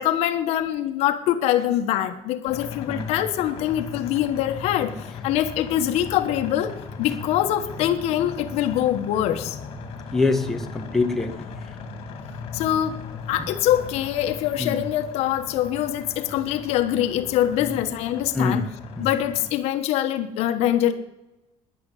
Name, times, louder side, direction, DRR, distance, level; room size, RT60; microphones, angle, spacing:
voice 1, 0.0-9.6 12.5-13.0 13.3-18.6 19.0-20.9, left 12 dB, 80° left, 8 dB, 1.2 m, -24 dB
sound 1, 2.5-19.5, left 5 dB, 60° left, 2.4 m, -38 dB
voice 2, 10.1-11.4 14.6-14.8 17.6-17.8 18.3-18.7 19.0-19.1, left 3 dB, 5° left, 3 dB, 1.4 m, -24 dB
12.0 x 10.5 x 8.3 m, 0.98 s
cardioid pair, 155°, 11 cm